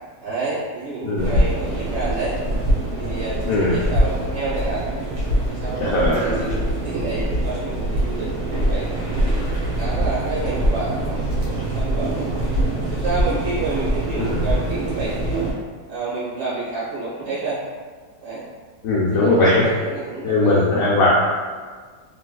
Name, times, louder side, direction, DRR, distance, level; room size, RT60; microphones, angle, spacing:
voice 1, 0.2-2.3 3.0-4.8 5.5-9.3 9.8-12.5 12.9-15.5 15.9-17.6 18.2-18.4 19.1-20.9, right 3 dB, 50° right, -10 dB, 1.3 m, -29 dB
voice 2, 1.0-1.3 3.5-3.8 5.8-6.5 14.2-14.4 18.8-19.7 20.2-21.2, left 2 dB, 75° left, -6 dB, 0.7 m, -19 dB
sound 1, 1.2-15.5, right 1 dB, 65° right, 1.4 m, -23 dB
3.3 x 3.0 x 2.2 m, 1.5 s
omnidirectional pair, 2.0 m